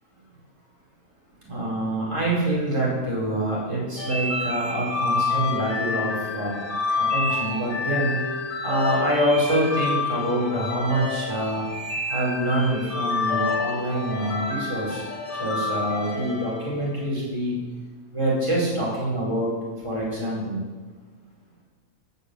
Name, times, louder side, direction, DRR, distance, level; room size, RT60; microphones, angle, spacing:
voice 1, 1.4-6.6 7.0-8.2 8.6-11.6 12.1-15.0 15.4-17.5 18.1-19.5 19.8-20.6, right 1 dB, 20° right, -6 dB, 4.9 m, -25 dB
sound 1, 4.0-17.1, left 3 dB, 55° left, 3.3 m, -28 dB
14.5 x 7.1 x 8.5 m, 1.4 s
omnidirectional pair, 1.5 m